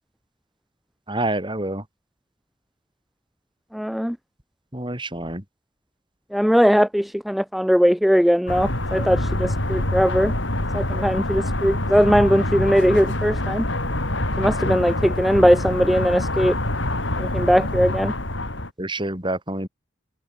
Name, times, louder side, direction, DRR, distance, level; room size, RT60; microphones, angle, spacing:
voice 1, 1.1-1.8 4.7-5.4 18.8-19.7, right 1 dB, 25° right, 5.8 m, -27 dB
voice 2, 3.7-4.2 6.3-10.3 10.7-13.7 14.4-16.6 17.2-18.1, equal, ahead, 0.4 m, -19 dB
sound 1, 8.5-18.7, left 1 dB, 70° left, 5.0 m, -25 dB
head